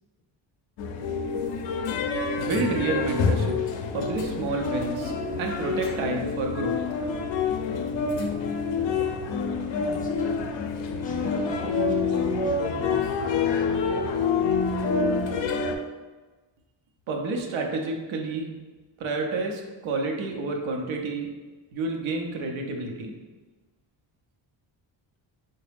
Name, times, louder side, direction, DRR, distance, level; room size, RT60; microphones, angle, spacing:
sound 1, 0.8-15.8, left 5 dB, 65° left, 0.5 m, -27 dB
voice 1, 2.4-3.6 3.9-5.1 5.4-6.8 17.1-18.5 19.0-21.3 21.7-23.2, right 3 dB, 75° right, 2 dB, 0.7 m, -29 dB
voice 2, 9.7-10.6 10.9-13.7, left 2 dB, 20° left, -1 dB, 0.5 m, -41 dB
3.8 x 2.2 x 3.3 m, 1.3 s
cardioid pair, 90°, 48 cm